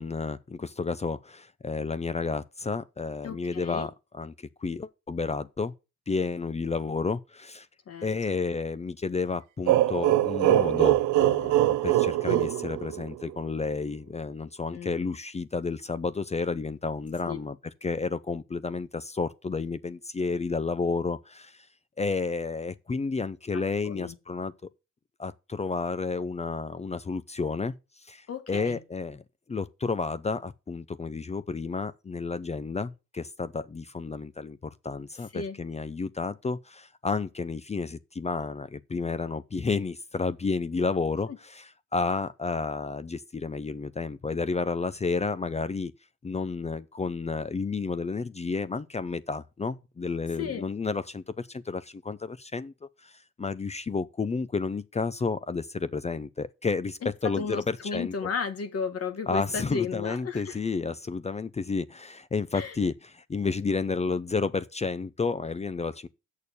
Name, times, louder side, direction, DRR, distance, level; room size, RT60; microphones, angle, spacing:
voice 1, 0.0-5.7 6.1-7.7 8.0-17.6 17.8-21.7 22.0-24.5 25.2-27.7 28.0-29.2 29.5-41.6 41.9-45.9 46.2-52.7 53.0-58.1 59.3-66.1, left 4 dB, 20° left, 0.6 m, -31 dB
voice 2, 3.2-3.9 7.9-8.3 14.7-15.1 17.3-17.4 23.5-24.1 28.3-28.8 35.3-35.6 41.3-41.4 50.4-50.6 57.0-60.6 62.5-62.8, left 6 dB, 50° left, 1.7 m, -34 dB
sound 1, 9.7-13.4, right 14 dB, 80° right, 0.5 m, -23 dB
6.7 x 6.6 x 6.9 m
cardioid pair, 90°, 30 cm